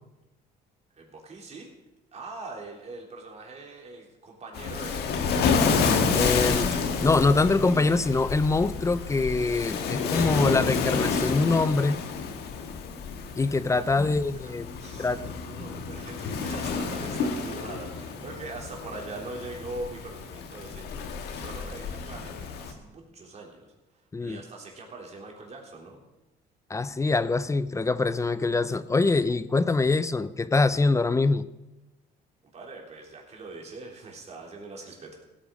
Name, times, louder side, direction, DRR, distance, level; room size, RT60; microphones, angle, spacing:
voice 1, 0.9-1.7 2.1-5.1 13.7-26.0 32.5-35.2, right 2 dB, 40° right, 0 dB, 3.6 m, -42 dB
Waves surf, 4.5-22.7, left 5 dB, 75° left, 1.7 m, -29 dB
voice 2, 6.1-6.8 7.0-12.0 13.4-14.7 15.0-15.2 24.1-24.4 26.7-31.5, left 3 dB, 20° left, 15 dB, 0.5 m, -24 dB
16.5 x 8.9 x 5.3 m, 0.99 s
cardioid pair, 110°, 17 cm